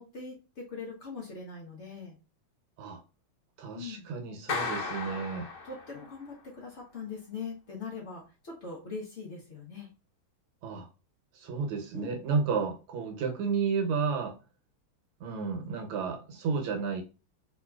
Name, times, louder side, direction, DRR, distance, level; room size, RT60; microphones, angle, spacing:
voice 1, 0.0-2.2 3.7-4.1 5.6-9.9 11.9-12.1 15.6-15.7, left 4 dB, 55° left, -2 dB, 0.7 m, -41 dB
voice 2, 3.6-5.5 10.6-10.9 11.3-14.4 15.2-17.0, right 5 dB, 80° right, 3 dB, 1.7 m, -32 dB
Clapping, 4.5-6.2, left 4 dB, 75° left, 1.6 m, -35 dB
3.6 x 2.8 x 2.3 m, 0.31 s
omnidirectional pair, 2.4 m